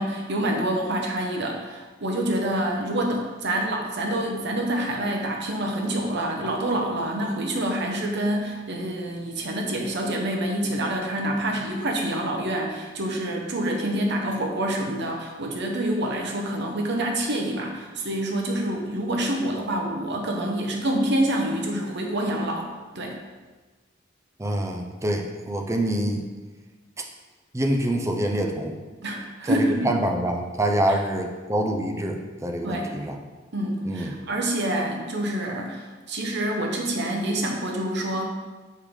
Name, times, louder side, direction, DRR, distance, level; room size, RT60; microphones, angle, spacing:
voice 1, 0.0-22.7 22.9-23.2 29.0-29.9 32.6-32.9 33.5-38.3, right 1 dB, 60° right, 2 dB, 0.9 m, -27 dB
voice 2, 24.4-26.2 27.5-28.8 29.4-33.2 33.8-34.1, right 1 dB, 15° right, 3 dB, 0.6 m, -26 dB
6.6 x 5.0 x 3.7 m, 1.3 s
head